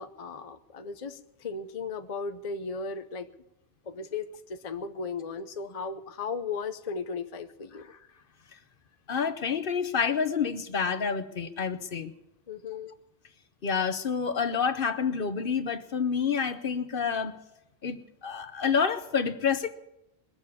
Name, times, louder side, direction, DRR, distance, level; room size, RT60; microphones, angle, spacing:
voice 1, 0.0-3.3 3.9-7.9 12.5-12.9, left 4 dB, 40° left, 8 dB, 0.7 m, -36 dB
voice 2, 9.1-12.1 13.6-17.3 17.8-18.0 18.2-19.7, left 6 dB, 60° left, 11 dB, 1.0 m, -28 dB
21.5 x 7.2 x 8.4 m, 0.87 s
omnidirectional pair, 1.1 m